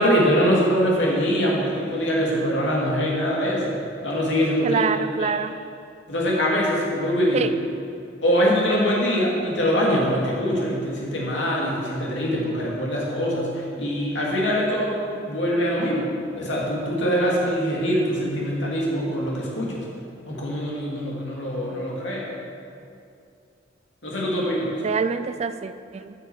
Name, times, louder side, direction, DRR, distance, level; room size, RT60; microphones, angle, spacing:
voice 1, 0.0-3.7 4.0-4.8 5.2-5.3 6.1-7.5 8.2-16.1 16.4-19.8 20.3-22.3 24.0-24.8, equal, 65° left, -3 dB, 2.4 m, -23 dB
voice 2, 4.6-5.6 7.3-7.5 24.8-26.1, right 5 dB, 35° right, 11 dB, 0.3 m, -25 dB
9.1 x 6.4 x 7.1 m, 2.4 s
head